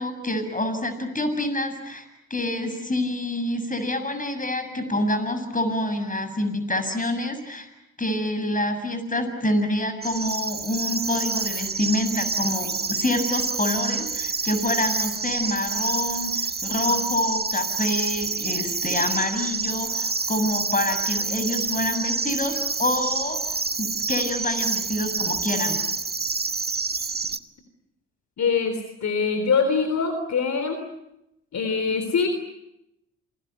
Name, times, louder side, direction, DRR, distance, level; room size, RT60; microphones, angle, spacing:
voice 1, 0.0-2.1 2.3-7.7 8.0-25.8, left 1 dB, 25° left, 9 dB, 7.2 m, -27 dB
sound 1, 10.0-27.4, right 4 dB, 30° right, 1.5 m, -28 dB
voice 2, 28.4-30.8 31.5-32.3, left 5 dB, 55° left, 8 dB, 3.6 m, -23 dB
28.0 x 20.5 x 9.4 m, 0.86 s
hypercardioid pair, 50°, 33 cm